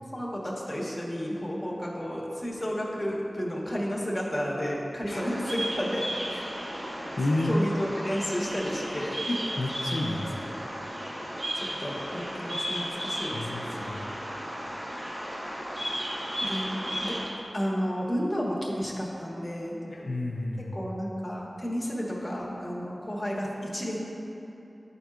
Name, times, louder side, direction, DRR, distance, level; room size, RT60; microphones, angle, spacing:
voice 1, 0.1-6.0 7.4-9.2 11.8-13.7 16.4-16.7 17.0-17.2 17.5-19.8 20.7-24.0, equal, 20° left, -4 dB, 1.2 m, -32 dB
voice 2, 5.1-5.5 6.3-6.4 7.2-7.6 9.3-10.5 13.3-14.1 19.9-20.9, left 1 dB, 80° left, -1 dB, 0.5 m, -31 dB
Bird vocalization bird call bird song, 5.1-17.3, equal, 50° right, 1.2 m, -34 dB
10.5 x 4.5 x 2.4 m, 3.0 s
wide cardioid pair, 75°, 0 cm